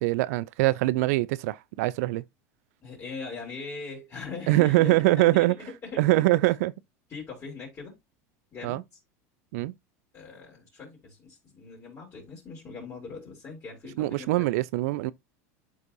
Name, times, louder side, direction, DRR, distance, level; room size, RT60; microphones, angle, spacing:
voice 1, 0.0-2.2 4.5-5.5 6.0-6.7 8.6-8.8 9.5-9.7 14.0-15.1, right 19 dB, 75° right, 0.4 m, -23 dB
voice 2, 2.8-6.3 7.1-8.0 8.5-8.8 10.1-14.5, left 4 dB, 30° left, 4.3 m, -40 dB
12.0 x 4.1 x 2.6 m
supercardioid pair, 115°, 8 cm